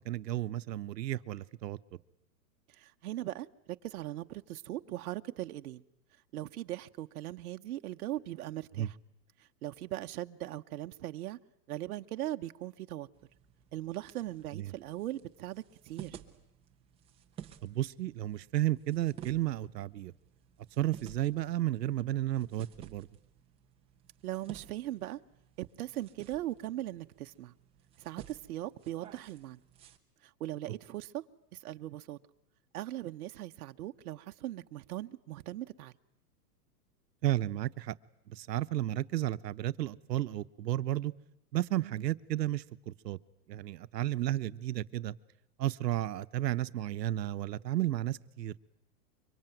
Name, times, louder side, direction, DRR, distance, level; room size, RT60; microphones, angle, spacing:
voice 1, 0.0-1.8 8.8-8.9 14.5-14.7 17.6-20.1 20.8-23.1 37.2-37.9 38.3-41.1 41.5-43.2 43.5-45.1 45.6-48.6, right 14 dB, 85° right, 1.1 m, -33 dB
voice 2, 2.8-5.8 6.3-8.9 9.6-11.4 11.7-13.1 13.7-16.2 24.2-25.2 25.6-27.5 28.0-29.6 30.4-31.2 31.5-32.2 32.7-35.9 41.8-42.0, right 14 dB, 65° right, 1.1 m, -39 dB
sound 1, 13.1-30.0, right 9 dB, 10° right, 1.0 m, -54 dB
25.0 x 24.0 x 9.2 m
supercardioid pair, 165°, 48 cm